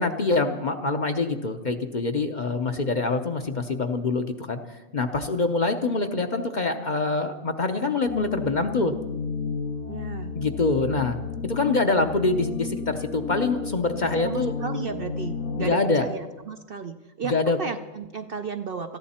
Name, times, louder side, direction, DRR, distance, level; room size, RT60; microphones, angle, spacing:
voice 1, 0.0-4.6 4.9-8.9 10.3-11.2 11.4-14.5 15.6-16.1 17.3-17.6, left 3 dB, 40° left, 6 dB, 0.8 m, -25 dB
sound 1, 8.1-15.8, left 5 dB, 75° left, 1.5 m, -33 dB
voice 2, 9.9-10.4 14.2-19.0, right 5 dB, 55° right, 7 dB, 0.7 m, -34 dB
20.0 x 14.5 x 4.3 m, 1.1 s
omnidirectional pair, 1.4 m